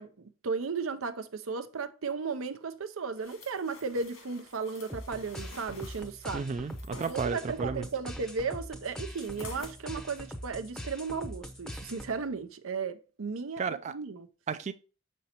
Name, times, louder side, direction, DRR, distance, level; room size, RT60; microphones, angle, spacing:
voice 1, 0.0-6.5 7.1-14.3, right 5 dB, 85° right, 0.7 m, -35 dB
sound 1, 3.2-7.2 9.1-9.8 10.3-10.4, left 3 dB, 85° left, 1.9 m, -50 dB
sound 2, 4.9-12.3, equal, 5° left, 0.6 m, -42 dB
voice 2, 6.3-7.8 13.6-13.9 14.5-14.7, right 5 dB, 35° right, 0.3 m, -33 dB
6.4 x 5.4 x 2.9 m
head